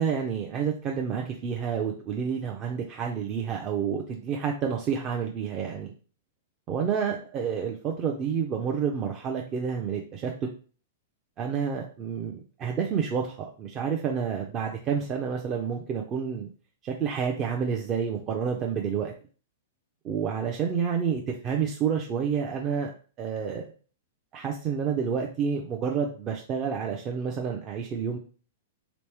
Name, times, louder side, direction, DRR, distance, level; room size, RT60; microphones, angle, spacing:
voice 1, 0.0-5.9 6.7-10.3 11.4-16.5 16.8-19.1 20.0-22.9 23.2-23.6 24.3-28.2, right 7 dB, 30° right, 1 dB, 0.5 m, -29 dB
3.5 x 3.0 x 3.4 m, 0.39 s
hypercardioid pair, 145°, 0 cm